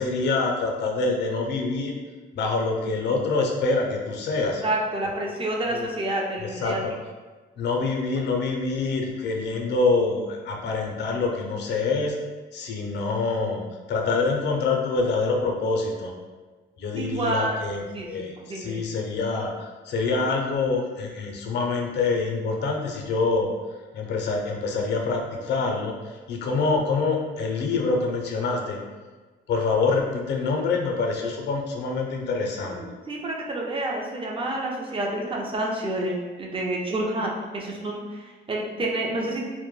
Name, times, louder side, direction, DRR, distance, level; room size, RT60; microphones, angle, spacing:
voice 1, 0.0-1.9 2.3-4.6 5.7-5.9 6.4-6.9 7.6-12.2 12.5-13.6 13.9-16.1 16.8-23.5 23.9-28.8 29.5-32.8, left 3 dB, 60° left, 1 dB, 0.5 m, -26 dB
voice 2, 4.4-6.8 16.9-18.8 33.1-36.1 36.4-39.4, right 1 dB, 25° right, -1 dB, 0.5 m, -29 dB
2.1 x 2.1 x 3.0 m, 1.3 s
cardioid pair, 90°, 20 cm